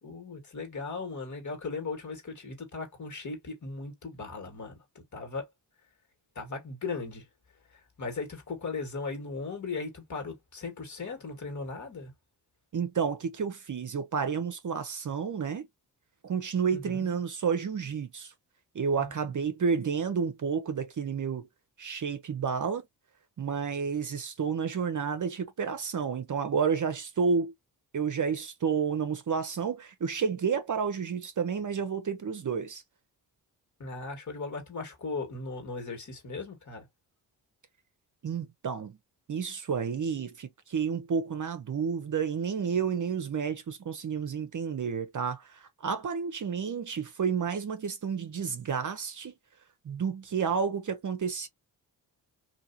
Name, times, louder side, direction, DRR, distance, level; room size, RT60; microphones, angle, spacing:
voice 1, 0.0-4.8 5.1-5.5 6.4-7.3 7.7-12.1 16.7-17.1 19.0-19.1 33.8-36.9, left 4 dB, 40° left, 1.9 m, -37 dB
voice 2, 12.7-15.7 16.2-18.3 18.7-21.5 21.8-22.9 23.4-27.5 27.9-32.8 38.2-39.0 39.3-49.3 49.8-51.5, right 6 dB, 45° right, 0.7 m, -30 dB
2.8 x 2.7 x 2.7 m
supercardioid pair, 50°, 44 cm